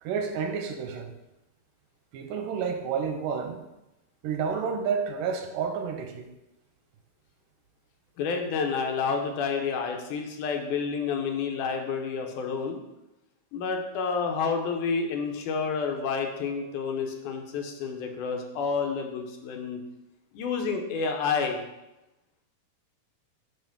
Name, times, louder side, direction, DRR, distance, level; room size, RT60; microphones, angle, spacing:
voice 1, 0.0-1.1 2.1-3.6 4.2-6.3, right 6 dB, 90° right, 5 dB, 2.3 m, -30 dB
voice 2, 8.2-12.8 13.5-19.8 20.3-21.6, left 5 dB, 75° left, 3 dB, 2.3 m, -29 dB
8.9 x 3.1 x 5.8 m, 0.95 s
omnidirectional pair, 3.7 m